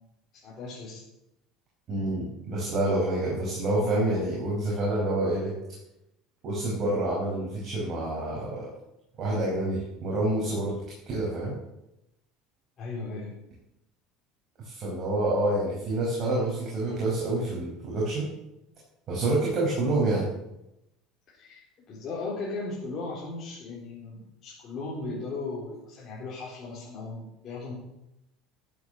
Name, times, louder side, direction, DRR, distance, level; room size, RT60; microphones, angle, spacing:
voice 1, 0.3-1.0 12.8-13.3 21.3-21.6 21.9-27.7, left 3 dB, 35° left, -7 dB, 3.9 m, -37 dB
voice 2, 1.9-5.5 6.4-8.7 9.2-10.8 11.1-11.5 14.6-18.3 19.1-20.3, right 2 dB, 35° right, -5 dB, 5.0 m, -27 dB
13.5 x 8.2 x 7.0 m, 0.87 s
cardioid pair, 155°, 0 cm